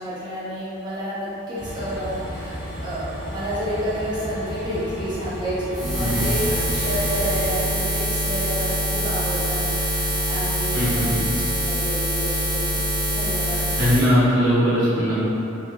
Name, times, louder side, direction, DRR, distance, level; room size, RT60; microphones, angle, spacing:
voice 1, 0.0-11.1 11.5-12.9 13.1-13.8, equal, 20° right, -11 dB, 0.8 m, -30 dB
Train, 1.6-7.6, equal, 60° left, 0.9 m, -33 dB
Buzz, 5.7-14.1, equal, ahead, 1.3 m, -24 dB
voice 2, 10.7-11.2 13.8-15.1, equal, 90° right, -10 dB, 1.2 m, -20 dB
3.0 x 2.9 x 2.7 m, 3.0 s
head